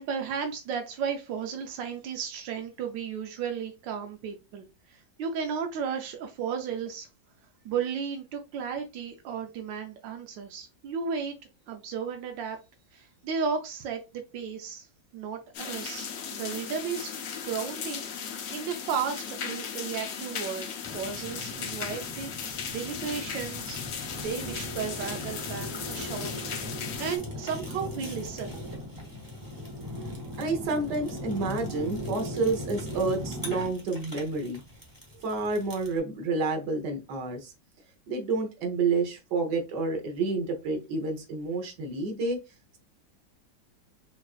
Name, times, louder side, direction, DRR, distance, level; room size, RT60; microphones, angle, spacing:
voice 1, 0.0-7.1 7.6-11.3 11.7-12.6 12.9-14.9 15.1-17.1 17.4-22.3 22.7-23.8 24.1-26.3 27.0-28.6, right 6 dB, 90° right, 1.3 m, -34 dB
sound 1, 15.5-27.2, left 7 dB, 60° left, 0.9 m, -37 dB
Fire, 20.8-36.0, equal, 15° right, 1.0 m, -39 dB
voice 2, 30.4-34.6 35.2-37.5 38.1-42.4, right 3 dB, 70° right, 1.6 m, -29 dB
5.5 x 2.5 x 2.4 m
omnidirectional pair, 1.9 m